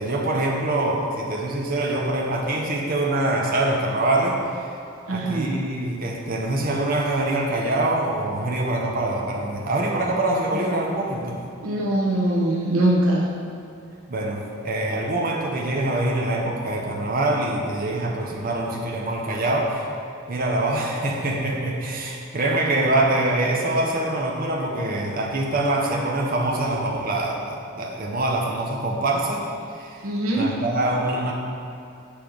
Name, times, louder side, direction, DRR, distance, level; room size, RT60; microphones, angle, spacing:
voice 1, 0.0-4.4 5.1-11.4 14.1-19.9 20.3-29.4 29.7-30.1 30.4-31.3, right 2 dB, 40° right, -2 dB, 0.8 m, -24 dB
voice 2, 5.1-5.5 10.5-10.6 11.6-13.3 30.0-30.5, right 1 dB, 85° right, -3 dB, 1.0 m, -22 dB
7.2 x 3.4 x 6.0 m, 2.5 s
head